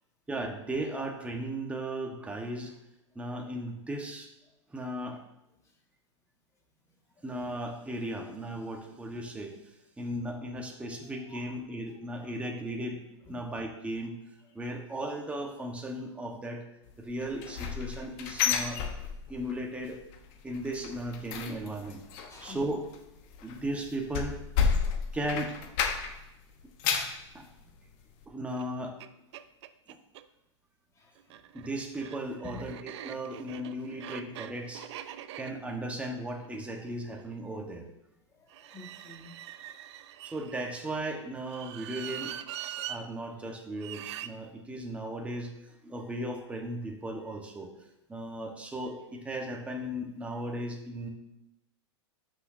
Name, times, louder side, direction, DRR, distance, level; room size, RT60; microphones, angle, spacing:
voice 1, 0.3-2.7 3.1-4.3 4.7-5.2 7.2-9.5 10.0-13.0 13.3-14.2 14.5-16.6 17.0-18.8 19.3-20.0 20.4-22.0 22.4-22.8 23.4-24.8 25.1-25.5 27.3-27.4 28.3-29.0 29.9-30.0 31.5-35.1 35.4-37.9 40.2-42.3 42.6-45.5 45.8-47.7 48.1-51.1, right 1 dB, 10° right, 1 dB, 1.3 m, -36 dB
voice 2, 11.2-11.5 12.2-12.3 13.3-13.4 22.3-22.7 30.9-31.4 32.4-32.7 38.3-39.5, left 1 dB, 20° left, 0 dB, 2.0 m, -49 dB
sound 1, 17.2-19.5 19.8-20.2 20.5-26.3 26.6-27.2 27.7-27.8 28.2-28.3, left 6 dB, 45° left, 1.1 m, -31 dB
sound 2, 28.6-28.7 29.0-29.1 29.3-30.2 31.2-37.3 38.5-40.8 41.4-43.0 43.8-44.3, right 11 dB, 65° right, 0.5 m, -43 dB
13.0 x 6.2 x 2.7 m, 0.88 s
hypercardioid pair, 130°, 16 cm